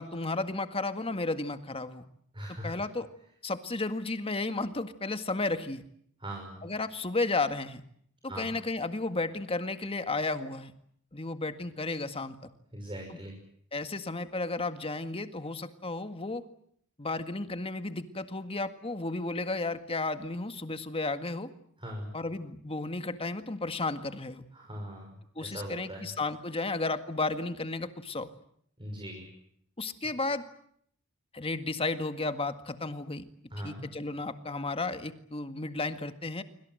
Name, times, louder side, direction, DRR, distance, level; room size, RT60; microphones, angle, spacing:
voice 1, 0.0-2.0 2.6-3.1 3.4-5.8 6.6-7.8 8.2-10.7 11.1-12.4 13.1-13.2 13.7-16.4 17.0-21.5 22.1-24.4 25.4-28.3 29.8-30.4 31.3-33.2 33.6-36.4, left 3 dB, 25° left, 9 dB, 1.9 m, -33 dB
voice 2, 2.3-2.7 6.2-6.7 8.3-8.5 12.7-13.4 21.8-22.1 24.5-26.1 28.8-29.3 30.0-30.1 33.5-33.9, right 1 dB, 25° right, 2 dB, 5.8 m, -40 dB
26.0 x 25.0 x 7.9 m, 0.66 s
head